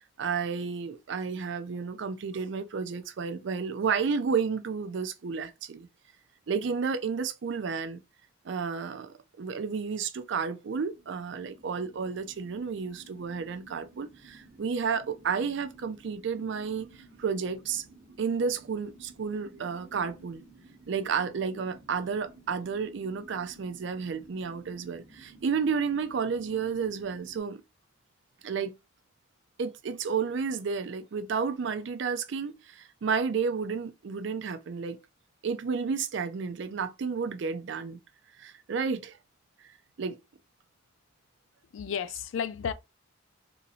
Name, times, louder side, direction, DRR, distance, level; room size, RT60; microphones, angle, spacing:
voice 1, 0.2-5.9 6.5-8.0 8.4-17.8 18.2-20.4 20.9-27.6 28.4-28.7 29.6-35.0 35.4-38.0 38.4-39.2 40.0-40.2, right 5 dB, 60° right, 0.4 m, -31 dB
sound 1, 10.8-27.4, right 2 dB, 40° right, 0.8 m, -54 dB
voice 2, 41.7-42.7, left 7 dB, 70° left, 0.3 m, -32 dB
2.9 x 2.7 x 2.5 m
head